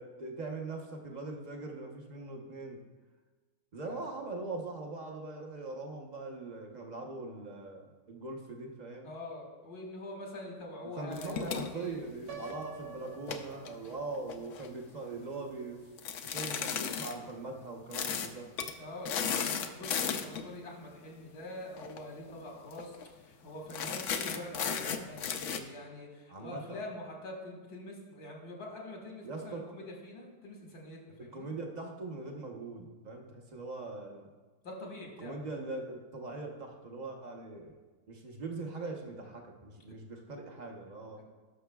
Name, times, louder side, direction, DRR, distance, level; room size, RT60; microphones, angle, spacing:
voice 1, 0.0-2.8 3.7-9.1 10.9-15.8 16.2-18.5 26.3-26.8 29.2-29.6 31.2-34.3 35.2-37.8 38.1-41.2, right 3 dB, 35° right, 1 dB, 0.9 m, -41 dB
voice 2, 9.0-12.0 18.8-31.5 34.6-35.3 41.2-41.3, left 1 dB, 85° left, -1 dB, 2.2 m, -45 dB
sound 1, 11.1-12.6 13.1-14.7 16.0-17.1 17.9-18.3 18.6-18.7 19.0-20.5 21.8-22.0 22.3-22.4 22.7-23.0 23.7-25.6, left 7 dB, 65° left, 0.9 m, -35 dB
Piano, 12.3-14.3, right 6 dB, 80° right, 1.3 m, -47 dB
18.0 x 6.4 x 2.3 m, 1.3 s
omnidirectional pair, 1.6 m